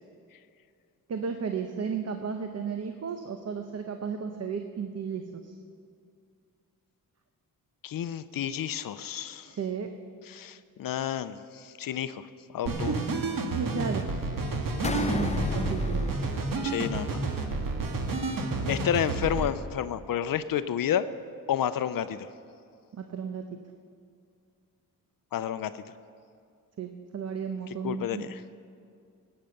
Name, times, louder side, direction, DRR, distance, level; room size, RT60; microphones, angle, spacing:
voice 1, 1.1-5.5 9.4-9.9 12.7-14.1 15.1-16.1 22.9-23.6 26.8-28.2, right 6 dB, 45° right, 6 dB, 0.8 m, -34 dB
voice 2, 7.8-9.5 10.3-12.2 12.5-12.9 16.6-17.2 18.7-21.1 21.5-22.3 25.3-25.8 27.8-28.4, left 9 dB, 70° left, 13 dB, 0.5 m, -30 dB
sound 1, 12.7-19.5, right 3 dB, 65° right, 1.6 m, -30 dB
sound 2, 14.8-17.4, left 5 dB, 20° left, 0.4 m, -32 dB
18.5 x 8.9 x 6.5 m, 2.4 s
wide cardioid pair, 140°, 36 cm